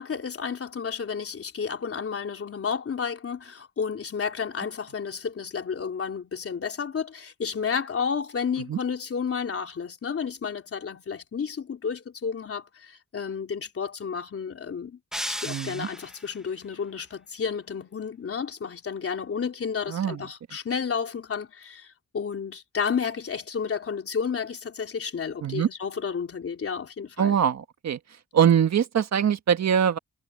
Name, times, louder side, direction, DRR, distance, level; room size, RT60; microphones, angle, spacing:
voice 1, 0.0-15.0 15.3-27.4, left 6 dB, 50° left, 3.7 m, -31 dB
sound 1, 15.1-16.4, equal, ahead, 1.5 m, -35 dB
voice 2, 15.5-15.9 19.9-20.2 25.4-25.7 27.2-28.0 28.3-30.0, right 8 dB, 65° right, 1.5 m, -23 dB
wide cardioid pair, 130°, 29 cm